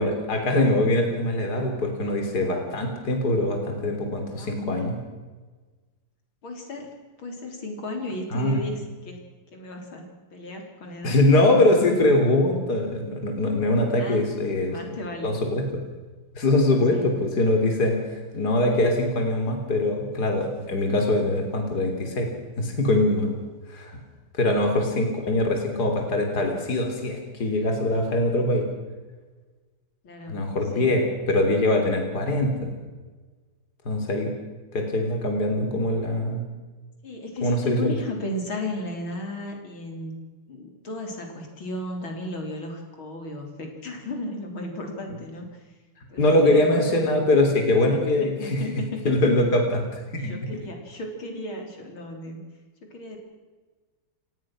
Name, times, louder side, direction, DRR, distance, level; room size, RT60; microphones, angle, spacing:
voice 1, 0.0-5.0 8.3-8.6 11.0-15.0 15.2-15.7 16.4-18.0 18.3-22.3 22.6-23.3 23.7-23.9 24.4-28.7 30.3-32.7 33.9-34.3 34.7-36.4 37.4-38.0 46.2-48.6 49.1-50.3, left 1 dB, 50° left, 3 dB, 3.9 m, -22 dB
voice 2, 4.3-4.8 6.4-9.2 9.5-11.2 14.0-14.3 14.7-15.3 16.9-17.2 30.0-30.5 30.7-31.0 37.0-40.1 40.5-45.6 46.1-47.3 48.2-49.3 50.2-52.4 52.9-53.2, left 2 dB, 70° left, 2 dB, 4.6 m, -35 dB
29.5 x 18.0 x 6.3 m, 1.3 s
omnidirectional pair, 2.3 m